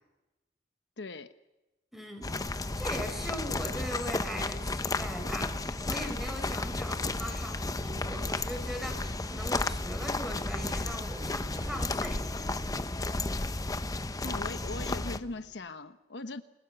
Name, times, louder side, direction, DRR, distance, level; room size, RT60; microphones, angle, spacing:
voice 1, 1.0-1.3 14.2-16.4, left 3 dB, 80° left, 10 dB, 1.0 m, -40 dB
voice 2, 1.9-12.4, equal, ahead, 5 dB, 4.9 m, -40 dB
sound 1, 2.2-15.2, left 2 dB, 20° left, 0.8 m, -33 dB
sound 2, 3.0-15.6, equal, 15° right, 5.6 m, -53 dB
29.5 x 20.5 x 7.0 m, 1.0 s
head